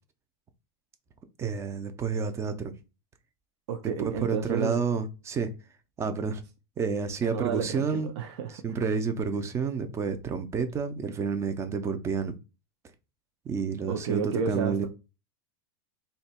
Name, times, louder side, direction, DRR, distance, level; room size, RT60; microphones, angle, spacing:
voice 1, 1.4-2.7 4.0-5.5 6.0-6.4 6.8-8.1 8.5-12.3 13.4-14.9, right 5 dB, 20° right, 0.4 m, -30 dB
voice 2, 3.7-4.8 7.2-8.6 13.9-14.9, right 7 dB, 75° right, 0.5 m, -31 dB
2.7 x 2.2 x 4.1 m
supercardioid pair, 145°, 14 cm